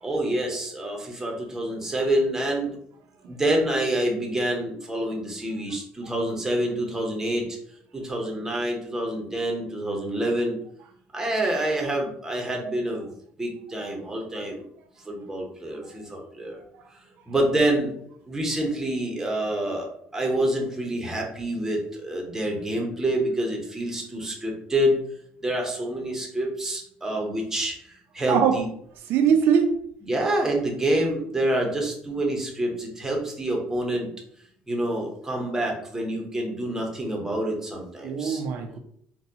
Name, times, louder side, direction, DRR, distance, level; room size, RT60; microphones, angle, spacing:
voice 1, 0.0-2.7 3.3-7.6 7.9-10.6 11.1-13.0 13.4-14.6 15.1-16.6 17.3-17.9 18.3-19.9 20.1-25.0 25.4-27.8 28.1-28.6 30.1-34.1 34.7-38.4, right 1 dB, 10° right, 0 dB, 0.9 m, -27 dB
voice 2, 28.3-28.6 29.1-29.7 38.0-38.8, right 7 dB, 70° right, 6 dB, 0.5 m, -21 dB
4.1 x 2.3 x 2.7 m, 0.67 s
cardioid pair, 120°, 4 cm